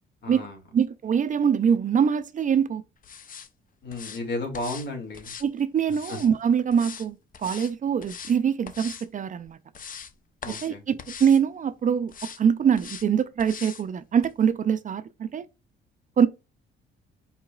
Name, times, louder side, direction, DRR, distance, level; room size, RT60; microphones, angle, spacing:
voice 1, 0.2-0.6 3.8-5.3 6.1-6.2 10.4-10.8, left 2 dB, 60° left, 2.3 m, -33 dB
voice 2, 0.7-2.8 5.4-9.6 10.5-15.4 16.2-16.3, right 7 dB, 40° right, 0.4 m, -24 dB
sound 1, 3.0-3.5 3.9-4.2 4.5-4.9 5.1-6.3 6.7-7.1 7.3-7.7 8.0-8.4 8.7-9.1 9.5-10.1 10.4-10.7 11.0-11.4 12.1-12.4 12.8-13.1 13.4-13.8 14.2-14.3, left 7 dB, 45° left, 0.6 m, -41 dB
4.7 x 4.5 x 2.3 m
cardioid pair, 90°, 20 cm